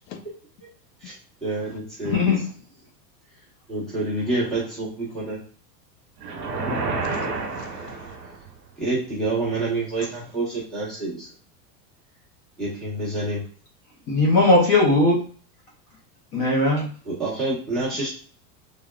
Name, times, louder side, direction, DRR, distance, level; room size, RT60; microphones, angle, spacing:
voice 1, 1.4-2.3 3.7-5.4 8.8-11.3 12.6-13.4 17.0-18.1, right 2 dB, ahead, 1.1 m, -27 dB
voice 2, 2.0-2.4 14.1-15.2 16.3-16.9, left 2 dB, 25° left, 0.5 m, -18 dB
sound 1, 6.2-8.5, right 3 dB, 70° right, 1.2 m, -29 dB
voice 3, 7.0-8.2 17.9-18.1, left 7 dB, 80° left, 0.7 m, -45 dB
3.4 x 2.2 x 2.3 m
supercardioid pair, 160°, 48 cm